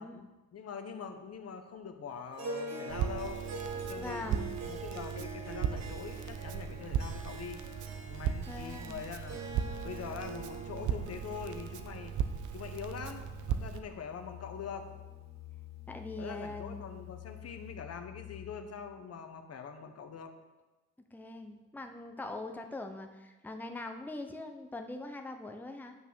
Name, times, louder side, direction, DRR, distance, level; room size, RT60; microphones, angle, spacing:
voice 1, 0.0-4.2 4.6-7.6 8.1-9.4 9.8-12.1 12.5-14.9 16.2-20.3, left 6 dB, 55° left, 7 dB, 1.1 m, -43 dB
Harp, 2.3-14.9, right 4 dB, 60° right, 1.5 m, -44 dB
Crackle, 2.9-13.8, right 8 dB, 75° right, 0.8 m, -37 dB
voice 2, 4.0-4.6 8.3-9.0 15.9-16.9 21.1-26.0, left 2 dB, 5° left, 4 dB, 0.8 m, -42 dB
sound 1, 11.7-19.2, left 16 dB, 80° left, 0.7 m, -50 dB
9.2 x 6.0 x 6.2 m, 1.2 s
cardioid pair, 90°, 30 cm